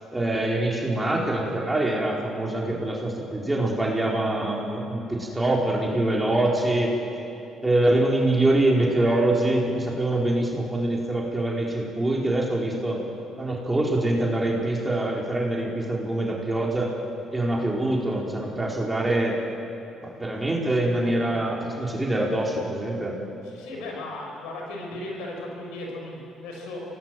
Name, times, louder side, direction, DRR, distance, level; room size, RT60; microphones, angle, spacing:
voice 1, 0.1-7.0 7.6-13.0 13.4-16.9 17.3-19.4 20.0-23.1, right 1 dB, 15° right, -2 dB, 4.5 m, -24 dB
voice 2, 23.4-26.8, left 2 dB, 85° left, -1 dB, 5.9 m, -36 dB
25.5 x 18.5 x 7.8 m, 2.9 s
supercardioid pair, 65°, 0 cm